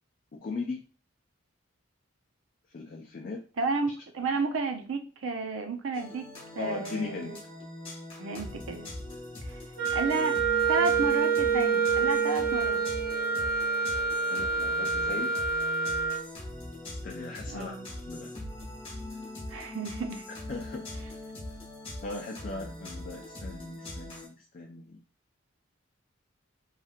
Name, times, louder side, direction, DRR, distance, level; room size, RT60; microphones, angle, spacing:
voice 1, 0.4-0.8 2.7-3.4 6.6-7.4 14.3-15.3 17.0-17.8 18.1-18.3 20.5-20.8 22.0-25.0, left 3 dB, 45° left, -1 dB, 0.4 m, -38 dB
voice 2, 3.6-6.3 6.5-7.4 8.2-8.9 9.4-9.6 9.9-10.4 10.7-12.8 17.5-17.9 19.5-20.2, right 3 dB, 90° right, 5 dB, 0.5 m, -32 dB
sound 1, 5.9-24.3, left 1 dB, 25° left, 1.1 m, -41 dB
Wind instrument woodwind instrument, 9.8-16.2, right 5 dB, 50° right, 0.6 m, -27 dB
3.1 x 2.8 x 2.4 m, 0.37 s
head